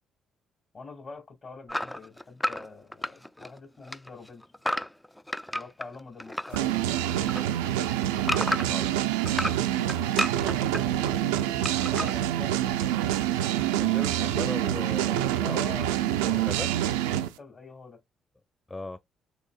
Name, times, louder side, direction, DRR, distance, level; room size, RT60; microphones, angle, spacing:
voice 1, 0.7-4.5 5.5-6.8 10.3-13.5 15.4-16.4 17.2-18.0, left 4 dB, 45° left, 2.1 m, -45 dB
sound 1, 1.7-3.6 3.8-6.6 6.9-8.9 9.3-10.8 11.6-12.1, left 1 dB, 5° left, 0.3 m, -31 dB
sound 2, 6.5-17.3, right 12 dB, 85° right, 0.4 m, -26 dB
voice 2, 8.1-8.9 13.8-15.6 16.2-16.7 18.7-19.0, left 2 dB, 25° left, 0.9 m, -38 dB
6.4 x 3.2 x 2.4 m
hypercardioid pair, 45°, 0 cm